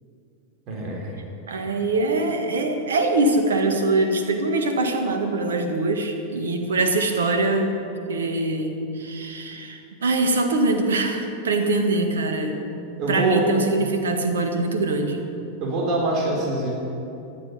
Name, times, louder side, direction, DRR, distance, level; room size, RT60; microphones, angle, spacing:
voice 1, 0.7-1.2 13.0-13.4 15.6-16.7, right 2 dB, 40° right, -2 dB, 3.6 m, -24 dB
voice 2, 1.5-7.8 8.1-12.6 13.1-15.3, right 2 dB, 65° right, 5 dB, 1.6 m, -23 dB
14.5 x 11.0 x 6.8 m, 2.8 s
figure-of-eight pair, 90°, 0 cm